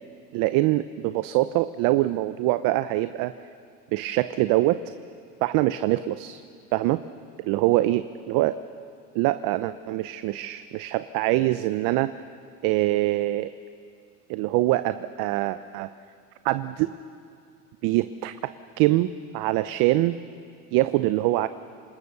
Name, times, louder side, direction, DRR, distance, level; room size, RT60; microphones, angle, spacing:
voice 1, 0.3-3.3 3.9-4.8 5.4-6.4 6.7-7.0 7.4-8.6 9.1-12.1 12.6-13.5 14.3-15.9 16.4-16.9 17.8-18.5 18.8-19.1 19.3-20.2 20.7-21.5, right 17 dB, 55° right, 13 dB, 0.7 m, -24 dB
27.5 x 19.5 x 6.8 m, 2.3 s
supercardioid pair, 115°, 40 cm